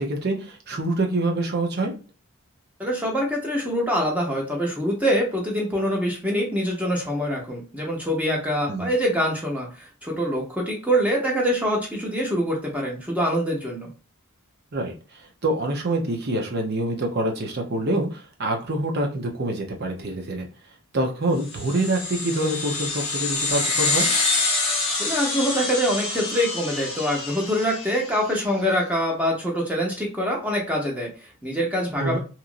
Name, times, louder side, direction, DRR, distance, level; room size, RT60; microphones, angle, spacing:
voice 1, 0.0-1.9 8.7-8.9 14.7-20.5 20.9-24.1 32.0-32.2, right 1 dB, 50° right, 2 dB, 0.6 m, -26 dB
voice 2, 2.8-13.9 24.9-32.2, equal, 5° right, -2 dB, 0.7 m, -25 dB
sound 1, 21.5-28.3, left 3 dB, 25° left, 0.8 m, -26 dB
2.9 x 2.5 x 2.5 m, 0.35 s
head